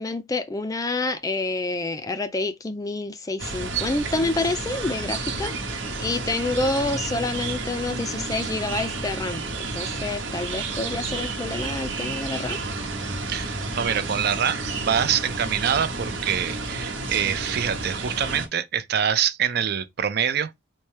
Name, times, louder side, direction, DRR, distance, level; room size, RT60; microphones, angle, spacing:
voice 1, 0.0-12.6, left 2 dB, 20° left, 0.3 m, -28 dB
sound 1, 3.4-18.5, right 3 dB, 75° right, 0.9 m, -31 dB
voice 2, 13.3-20.5, right 8 dB, 55° right, 0.4 m, -25 dB
4.2 x 2.2 x 3.1 m
head